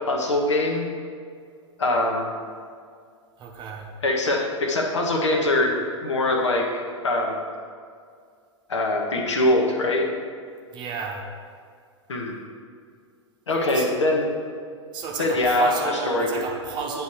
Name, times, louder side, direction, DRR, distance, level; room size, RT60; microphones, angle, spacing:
voice 1, 0.1-0.9 1.8-2.3 4.0-7.4 8.7-10.1 12.1-12.4 13.5-14.3 15.2-16.4, left 2 dB, 70° left, 1 dB, 1.0 m, -23 dB
voice 2, 3.4-3.9 10.7-11.2 13.5-13.9 14.9-17.0, right 5 dB, 30° right, 0 dB, 0.9 m, -32 dB
9.2 x 3.1 x 4.7 m, 2.2 s
figure-of-eight pair, 100°, 16 cm